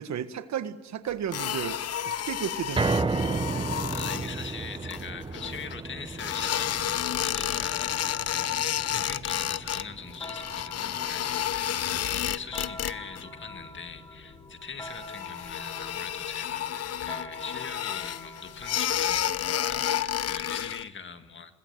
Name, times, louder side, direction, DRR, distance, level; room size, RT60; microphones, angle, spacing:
voice 1, 0.0-3.7 8.9-9.0, right 9 dB, 65° right, 11 dB, 1.6 m, -34 dB
sound 1, 1.3-5.7 6.2-9.8 10.1-13.2 13.5-14.0 14.3-14.4 14.8-20.9, left 11 dB, 55° left, 0.8 m, -31 dB
sound 2, 2.8-15.0 15.4-15.5 16.0-16.1, right 3 dB, 15° right, 0.8 m, -35 dB
voice 2, 3.9-21.5, left 5 dB, 40° left, 8 dB, 2.0 m, -42 dB
sound 3, 9.8-19.0, left 2 dB, 10° left, 2.5 m, -45 dB
24.5 x 20.5 x 8.1 m, 1.1 s
cardioid pair, 90°, 30 cm